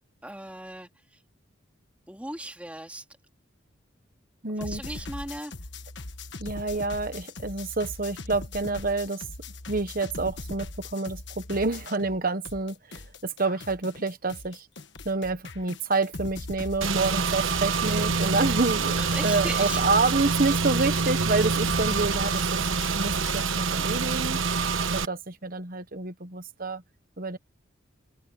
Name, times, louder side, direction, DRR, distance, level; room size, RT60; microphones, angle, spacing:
voice 1, 0.2-1.2 2.1-3.1 4.6-5.5 19.0-19.9, right 1 dB, 5° right, 3.0 m, -37 dB
voice 2, 4.4-4.8 6.4-9.2 9.7-14.7 15.0-22.6 22.9-26.8 27.2-27.4, right 3 dB, 45° right, 1.3 m, -28 dB
sound 1, 4.6-12.2 12.5-23.5, left 2 dB, 55° left, 1.5 m, -40 dB
Car / Engine, 16.8-25.1, right 5 dB, 70° right, 1.2 m, -26 dB
head